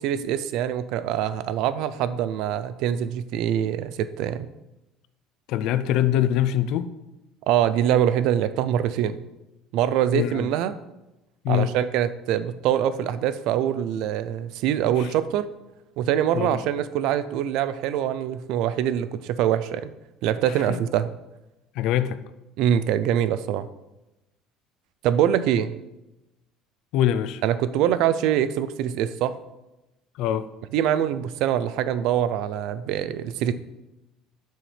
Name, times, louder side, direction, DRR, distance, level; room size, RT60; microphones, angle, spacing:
voice 1, 0.0-4.5 7.5-9.3 9.7-10.7 11.5-15.5 16.0-19.9 20.2-21.1 22.6-23.7 25.0-25.8 27.4-29.3 30.7-33.5, right 10 dB, 55° right, 0.5 m, -24 dB
voice 2, 5.5-6.9 10.1-10.5 11.4-11.7 15.0-15.1 16.3-16.6 20.5-20.8 21.8-22.2 26.9-27.4 30.2-30.5, left 11 dB, 55° left, 0.5 m, -24 dB
11.0 x 6.3 x 3.4 m
cardioid pair, 170°, 0 cm